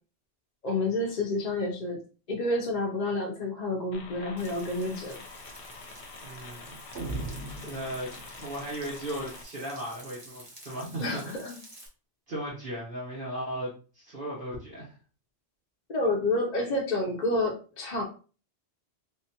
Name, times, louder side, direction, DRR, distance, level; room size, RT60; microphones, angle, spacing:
voice 1, 0.6-2.0 2.3-5.2 11.0-11.5 15.9-18.0, left 2 dB, 45° left, 0 dB, 0.6 m, -29 dB
sound 1, 3.9-9.4, left 4 dB, 75° left, 0.9 m, -46 dB
Frying (food), 4.4-11.9, right 1 dB, 30° right, 0.8 m, -50 dB
voice 2, 6.2-6.7 7.6-11.6 12.3-15.0, right 1 dB, 50° right, -6 dB, 1.2 m, -37 dB
sound 2, 6.9-8.6, right 2 dB, 75° right, 1.2 m, -37 dB
3.6 x 2.4 x 2.8 m, 0.37 s
omnidirectional pair, 1.2 m